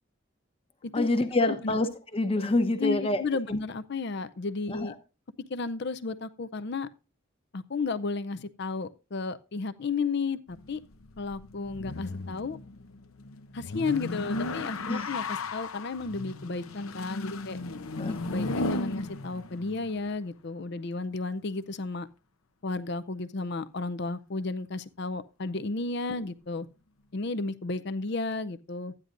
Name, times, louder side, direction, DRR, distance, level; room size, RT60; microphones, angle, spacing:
voice 1, 0.9-3.2 3.5-3.6 4.7-4.9 14.9-15.1 18.0-18.2, left 2 dB, 25° left, 0.9 m, -27 dB
voice 2, 1.5-1.8 2.8-4.9 5.5-6.9 7.5-10.8 11.2-12.6 13.5-17.6 18.0-22.1 22.6-26.7 27.1-29.1, left 3 dB, 50° left, 0.5 m, -33 dB
sound 1, 10.5-20.2, left 2 dB, 85° left, 0.8 m, -36 dB
13.0 x 9.8 x 2.5 m
head